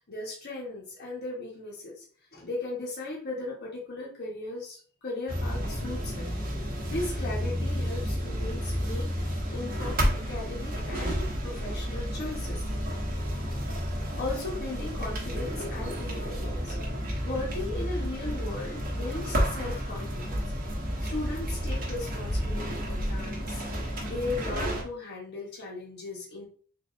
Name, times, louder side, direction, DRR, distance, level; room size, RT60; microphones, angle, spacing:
voice 1, 0.0-2.0 2.3-12.6 14.2-16.8 17.2-20.4 21.0-26.5, left 2 dB, 45° left, -4 dB, 1.2 m, -37 dB
sound 1, 5.3-24.8, equal, 40° right, 1.0 m, -31 dB
3.9 x 2.8 x 3.1 m, 0.43 s
head